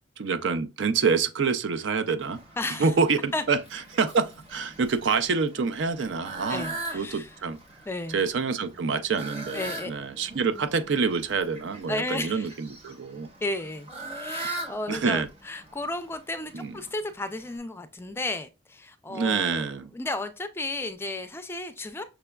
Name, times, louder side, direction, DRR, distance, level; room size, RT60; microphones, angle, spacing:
voice 1, 0.2-2.4 2.8-3.6 3.9-7.6 8.1-13.3 14.9-15.3 16.5-16.7 19.1-19.9, right 5 dB, 75° right, 0.5 m, -27 dB
Fowl, 2.2-17.6, right 2 dB, 35° right, 1.6 m, -42 dB
voice 2, 2.6-2.9 3.3-3.4 6.5-7.3 7.9-8.2 9.5-9.9 11.9-12.5 13.4-19.7 19.9-22.0, left 2 dB, 15° left, 0.4 m, -33 dB
6.0 x 3.3 x 2.2 m
head